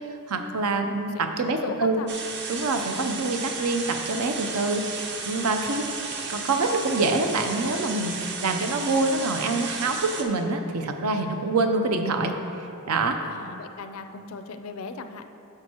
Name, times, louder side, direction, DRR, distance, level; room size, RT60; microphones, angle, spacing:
voice 1, 0.3-2.0 2.5-12.4 12.9-13.2, right 3 dB, 90° right, 5 dB, 0.6 m, -26 dB
voice 2, 1.6-2.1 13.2-15.2, left 4 dB, 70° left, 9 dB, 0.4 m, -37 dB
sound 1, 2.1-10.2, right 4 dB, 50° right, 0.7 m, -34 dB
10.5 x 6.3 x 2.9 m, 2.8 s
head